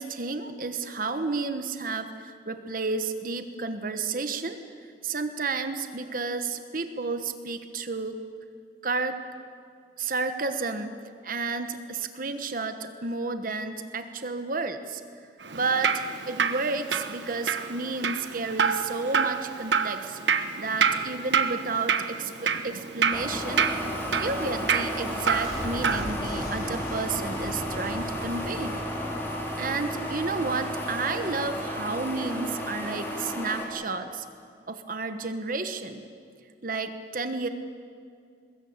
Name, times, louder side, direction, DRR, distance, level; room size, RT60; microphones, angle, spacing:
voice 1, 0.0-8.2 8.8-9.2 10.0-11.0 11.2-15.0 15.5-23.7 24.2-28.8 29.6-34.3 34.7-36.1 36.6-37.5, right 3 dB, 50° right, 8 dB, 1.2 m, -31 dB
Drip, 15.4-26.0, right 6 dB, 85° right, 1.2 m, -28 dB
sound 1, 23.1-33.7, equal, 15° left, 4.5 m, -33 dB
sound 2, 24.4-30.5, equal, 50° left, 7.8 m, -41 dB
23.0 x 20.5 x 8.8 m, 2.3 s
head